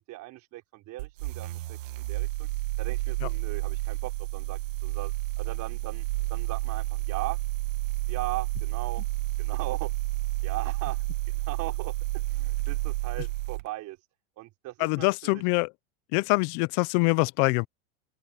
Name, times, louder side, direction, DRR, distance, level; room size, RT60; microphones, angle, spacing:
voice 1, 0.0-2.5 2.8-7.4 8.1-9.0 9.4-9.9 10.4-11.0 11.3-14.0 14.4-15.4, right 18 dB, 45° right, 4.1 m, -39 dB
sound 1, 1.0-13.7, right 21 dB, 65° right, 1.9 m, -30 dB
voice 2, 14.8-15.7 16.1-17.7, left 28 dB, 50° left, 0.9 m, -24 dB
open air
hypercardioid pair, 115°, 41 cm